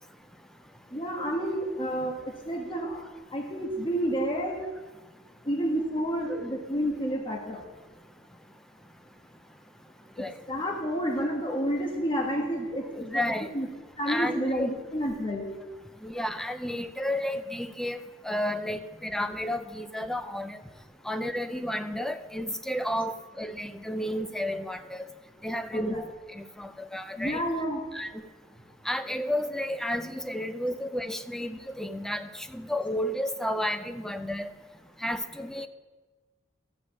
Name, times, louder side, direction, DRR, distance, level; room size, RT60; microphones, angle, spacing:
voice 1, 0.9-3.1 3.3-4.6 5.4-7.6 10.5-13.2 13.5-13.7 14.0-15.5 25.7-26.0 27.2-27.8, equal, 25° left, 0 dB, 1.3 m, -30 dB
voice 2, 13.0-13.5 14.1-14.7 16.0-18.0 18.2-20.6 21.0-25.1 25.4-26.1 26.4-27.4 27.9-28.2 28.9-34.5 35.0-35.7, left 1 dB, ahead, 10 dB, 0.5 m, -32 dB
14.0 x 4.9 x 7.1 m, 1.3 s
head